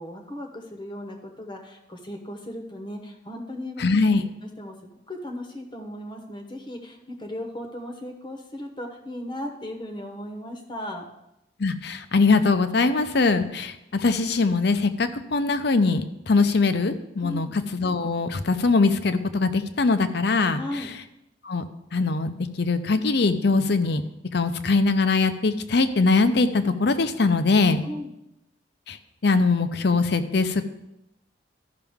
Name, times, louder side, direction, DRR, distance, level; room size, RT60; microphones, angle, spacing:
voice 1, 0.0-3.9 4.4-4.7 5.1-11.0 17.2-17.5 20.5-20.9 27.8-28.1, left 1 dB, 25° left, 3 dB, 0.9 m, -36 dB
voice 2, 3.8-4.2 11.6-20.6 21.4-21.6 21.9-24.0 24.3-27.8 28.9-29.0 29.2-30.6, left 3 dB, 60° left, 10 dB, 0.6 m, -22 dB
13.5 x 5.8 x 3.6 m, 0.87 s
head